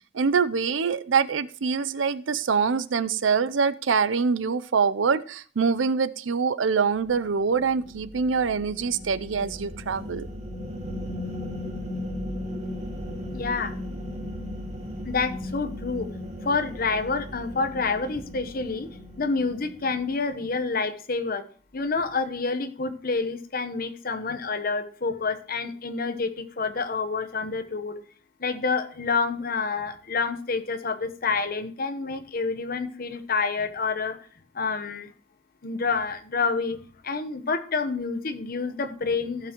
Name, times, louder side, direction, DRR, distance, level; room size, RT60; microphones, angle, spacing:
voice 1, 0.1-10.3, right 5 dB, 80° right, 15 dB, 0.6 m, -24 dB
sound 1, 7.0-20.5, left 1 dB, 35° right, 1.4 m, -37 dB
voice 2, 13.3-13.7 15.0-16.1 16.4-18.9 19.2-21.4 21.7-28.0 28.4-34.2 34.5-35.1 35.6-36.8 37.0-39.5, left 4 dB, 50° left, 9 dB, 1.0 m, -28 dB
16.0 x 5.9 x 3.0 m, 0.43 s
head